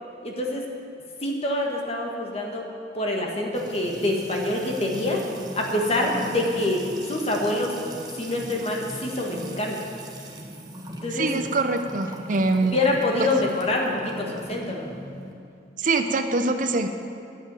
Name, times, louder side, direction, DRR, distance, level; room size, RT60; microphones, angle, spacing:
voice 1, 0.2-0.6 1.2-2.7 3.0-5.2 5.6-6.8 7.1-7.8 8.2-9.8 11.0-11.3 12.7-14.8, left 2 dB, 35° left, 0 dB, 1.6 m, -26 dB
Music / Water tap faucet / Trickle dribble, 3.5-15.3, equal, 20° right, 1.2 m, -39 dB
voice 2, 11.1-12.8 15.8-16.9, right 3 dB, 45° right, 6 dB, 0.7 m, -24 dB
9.7 x 8.6 x 9.0 m, 2.5 s
head